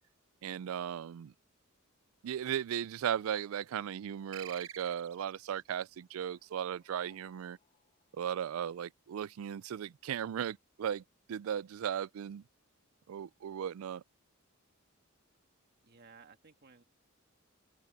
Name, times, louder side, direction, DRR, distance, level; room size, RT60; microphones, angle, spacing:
voice 1, 0.4-1.3 2.2-7.6 8.1-12.4 13.1-14.0, right 9 dB, 85° right, 0.3 m, -37 dB
sound 1, 4.3-5.5, right 10 dB, 65° right, 1.0 m, -47 dB
sound 2, 5.9-9.3, left 5 dB, 30° left, 3.6 m, -69 dB
voice 2, 15.8-16.8, right 5 dB, 50° right, 1.9 m, -57 dB
head